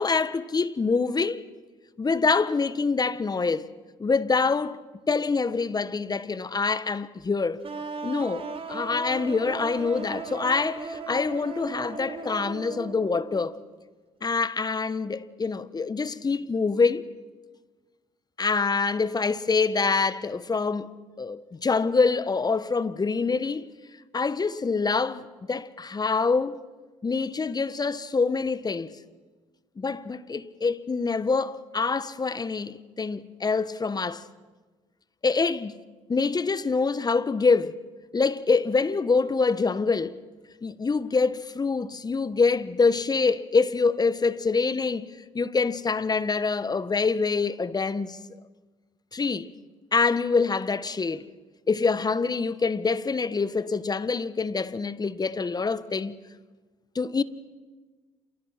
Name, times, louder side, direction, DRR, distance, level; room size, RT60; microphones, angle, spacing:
voice 1, 0.0-1.4 2.0-3.7 4.0-4.8 5.1-7.6 8.0-13.6 14.2-17.1 18.4-23.7 24.1-26.6 27.0-28.9 29.8-34.2 35.2-35.7 36.1-37.8 38.1-40.2 40.6-45.1 45.3-48.2 49.1-49.5 49.9-51.3 51.7-56.2 56.9-57.2, left 4 dB, 30° left, 1.3 m, -25 dB
sound 1, 7.6-13.5, right 4 dB, 45° right, 4.2 m, -37 dB
28.5 x 28.0 x 5.9 m
hypercardioid pair, 60°, 14 cm